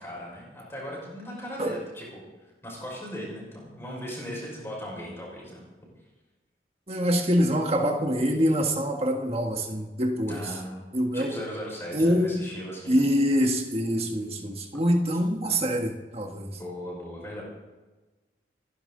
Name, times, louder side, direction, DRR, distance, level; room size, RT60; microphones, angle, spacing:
voice 1, 0.0-2.2 2.6-5.6 10.3-13.1 16.6-17.4, equal, 15° left, 5.4 m, -38 dB
voice 2, 6.9-10.6 10.9-11.4 11.9-12.4 12.9-16.6, equal, 35° right, 1.6 m, -25 dB
29.5 x 11.0 x 3.9 m
head